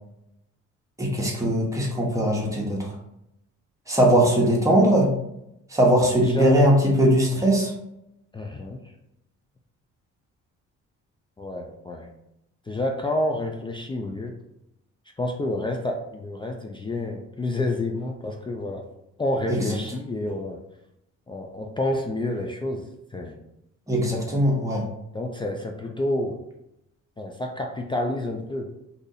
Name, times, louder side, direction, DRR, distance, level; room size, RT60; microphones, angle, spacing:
voice 1, 1.0-2.8 3.9-5.1 5.7-7.7 19.5-19.6 23.9-24.8, equal, 10° right, -2 dB, 1.0 m, -20 dB
voice 2, 6.2-6.6 8.3-8.8 11.4-12.1 12.7-14.3 15.2-18.9 19.2-20.6 21.3-23.4 25.1-26.4 27.2-28.7, left 1 dB, 15° left, 2 dB, 0.3 m, -29 dB
2.7 x 2.4 x 3.9 m, 0.84 s
cardioid pair, 90°, 30 cm